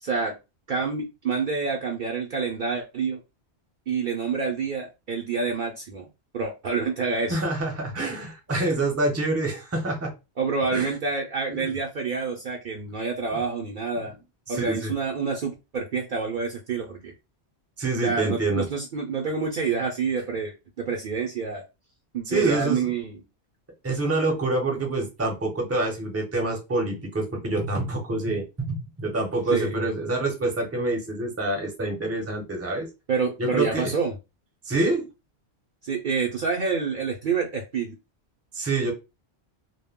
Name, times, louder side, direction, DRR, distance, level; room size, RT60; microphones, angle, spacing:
voice 1, 0.0-0.3 0.7-3.2 3.9-6.1 6.3-7.4 10.4-14.2 14.5-17.1 18.0-21.6 22.1-23.1 29.5-29.7 33.1-34.1 35.8-38.0, right 5 dB, 60° right, 0 dB, 0.6 m, -27 dB
voice 2, 7.3-10.1 10.7-10.9 11.5-11.7 13.3-13.4 14.5-14.9 17.8-18.7 22.3-22.9 23.8-32.9 33.4-33.9 34.6-35.1 38.5-38.9, right 2 dB, 15° right, 2 dB, 0.6 m, -26 dB
2.1 x 2.1 x 3.4 m, 0.27 s
omnidirectional pair, 1.1 m